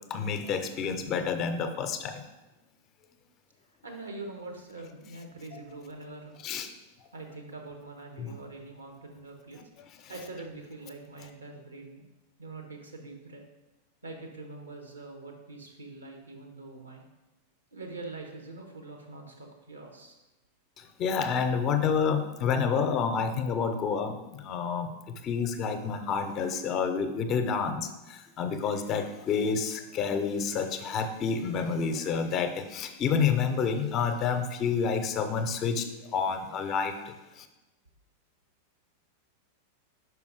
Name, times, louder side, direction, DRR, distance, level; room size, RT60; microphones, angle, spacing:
voice 1, 0.1-2.2 6.4-6.7 8.2-8.4 20.8-37.5, left 6 dB, 35° left, 8 dB, 0.6 m, -29 dB
voice 2, 3.8-6.4 7.1-9.7 10.1-12.0 12.4-13.4 14.0-17.0 17.7-20.1, right 3 dB, 80° right, 2 dB, 1.2 m, -44 dB
5.4 x 5.0 x 4.7 m, 1.0 s
figure-of-eight pair, 90°, 0 cm